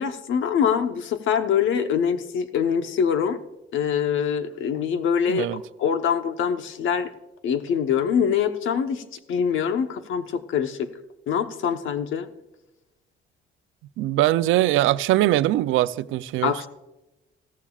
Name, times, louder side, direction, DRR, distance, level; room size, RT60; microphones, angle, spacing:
voice 1, 0.0-3.4 3.7-5.5 5.8-7.1 7.4-9.0 9.3-10.9 11.3-12.3 16.4-16.7, left 7 dB, 80° left, 1.1 m, -24 dB
voice 2, 5.3-5.6 14.0-16.7, right 14 dB, 90° right, 0.5 m, -22 dB
16.0 x 14.5 x 2.4 m
cardioid pair, 90°, 20 cm